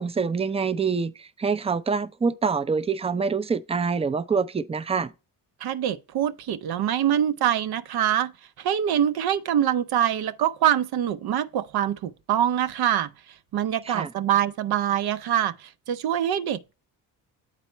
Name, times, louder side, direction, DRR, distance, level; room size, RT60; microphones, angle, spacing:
voice 1, 0.0-5.1 13.9-14.1, right 5 dB, 15° right, 0.4 m, -26 dB
voice 2, 5.6-8.3 8.6-13.1 13.5-16.7, right 10 dB, 65° right, 0.6 m, -24 dB
8.3 x 4.0 x 4.4 m
cardioid pair, 80°, 41 cm